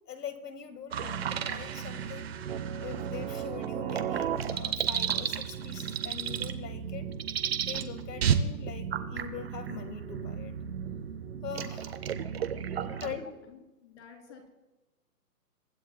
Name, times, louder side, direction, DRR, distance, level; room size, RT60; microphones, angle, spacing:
voice 1, 0.1-2.4 2.8-7.1 7.6-10.5 11.4-12.0 13.0-13.4, left 7 dB, 85° left, 10 dB, 1.8 m, -42 dB
sound 1, 0.9-13.2, right 8 dB, 40° right, 0.7 m, -33 dB
voice 2, 12.7-14.5, left 5 dB, 45° left, 4 dB, 2.5 m, -53 dB
23.5 x 13.5 x 2.2 m, 1.1 s
hypercardioid pair, 155°, 48 cm